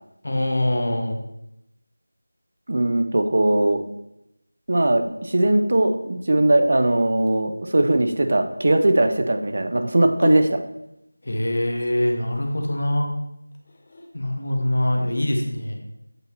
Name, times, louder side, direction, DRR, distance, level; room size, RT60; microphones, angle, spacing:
voice 1, 0.2-1.2 11.2-13.1 14.1-15.8, left 1 dB, 50° left, 2 dB, 1.0 m, -23 dB
voice 2, 2.7-3.8 4.7-10.6, right 1 dB, 40° right, 7 dB, 0.5 m, -20 dB
sound 1, 5.1-5.7 6.6-7.7 9.9-12.4 13.5-14.1, left 1 dB, 20° left, 0.5 m, -32 dB
7.9 x 2.8 x 4.3 m, 0.84 s
figure-of-eight pair, 175°, 0 cm